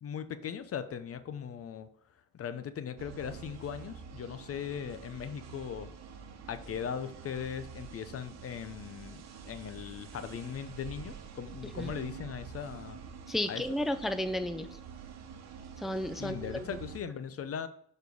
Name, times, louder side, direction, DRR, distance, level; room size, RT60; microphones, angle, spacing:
voice 1, 0.0-1.9 2.3-5.9 6.5-13.0 13.5-13.6 16.1-17.7, left 8 dB, 50° left, 12 dB, 0.7 m, -39 dB
sound 1, 3.0-17.0, right 6 dB, 60° right, 1.1 m, -47 dB
voice 2, 13.3-14.7 15.8-16.7, left 1 dB, ahead, 9 dB, 0.5 m, -33 dB
6.8 x 4.4 x 4.7 m, 0.64 s
cardioid pair, 90°, 30 cm